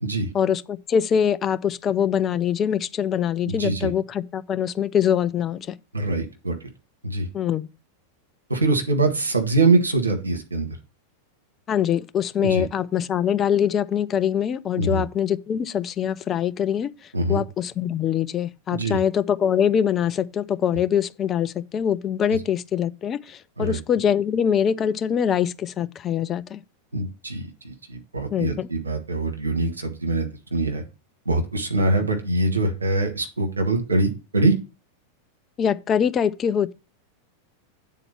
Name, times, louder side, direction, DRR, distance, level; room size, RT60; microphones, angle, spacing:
voice 1, 0.3-5.7 7.3-7.7 11.7-16.9 17.3-26.6 28.3-28.7 35.6-36.7, left 8 dB, 25° left, 0.5 m, -23 dB
voice 2, 3.5-3.9 5.9-6.6 7.0-7.3 8.5-10.7 12.4-12.7 14.8-15.0 17.1-17.4 18.7-19.0 23.6-23.8 26.9-30.8 31.2-34.5, right 2 dB, 75° right, 1.5 m, -23 dB
8.4 x 4.0 x 5.7 m
figure-of-eight pair, 90°, 0 cm